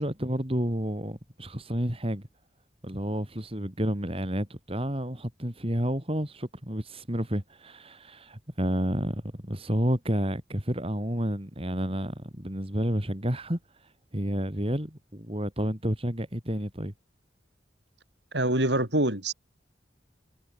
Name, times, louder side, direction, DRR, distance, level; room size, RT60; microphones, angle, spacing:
voice 1, 0.0-2.2 2.8-13.6 14.1-16.9, equal, 30° right, 4.5 m, -30 dB
voice 2, 18.3-19.3, right 1 dB, 75° right, 7.0 m, -25 dB
head